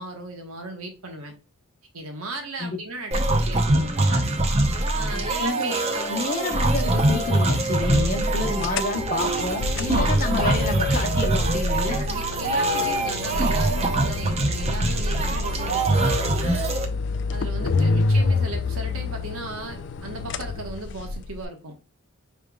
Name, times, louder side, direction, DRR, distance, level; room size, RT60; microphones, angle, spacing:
voice 1, 0.0-1.3 1.9-4.3 4.9-6.3 9.8-10.4 12.1-16.7 17.3-21.8, right 2 dB, 85° right, 1.2 m, -36 dB
sound 1, 3.1-16.8, right 2 dB, 30° right, 0.6 m, -23 dB
voice 2, 5.4-5.7 6.1-12.0 17.7-18.0, left 3 dB, 40° left, 1.0 m, -29 dB
sound 2, 8.6-21.4, left 3 dB, 55° left, 0.4 m, -28 dB
5.0 x 3.3 x 2.3 m
head